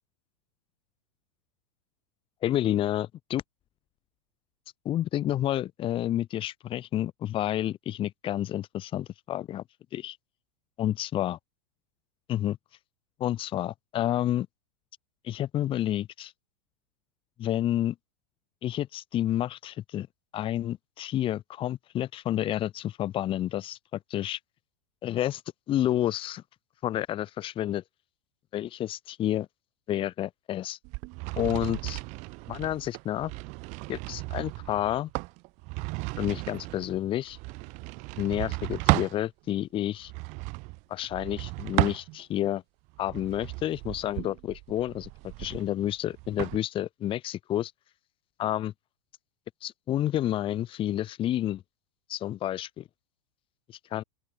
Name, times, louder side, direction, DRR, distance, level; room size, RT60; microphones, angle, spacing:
voice 1, 2.4-3.4 4.9-9.6 9.9-10.2 10.8-11.4 12.3-12.6 13.2-14.5 15.2-16.3 17.4-18.0 18.6-20.1 20.3-23.8 24.1-24.4 25.0-25.4 25.7-26.4 26.8-27.8 28.5-29.5 29.9-30.8 31.4-32.0 32.5-33.3 33.9-35.1 36.2-37.4 38.2-40.1 40.9-42.6 43.0-47.7 48.4-48.7 49.6-51.6 52.1-52.8 53.7-54.0, left 12 dB, 30° left, 1.9 m, -30 dB
sound 1, 30.8-39.2 40.0-42.5 43.0-46.6, right 27 dB, 40° right, 0.7 m, -34 dB
open air
supercardioid pair, 140°, 19 cm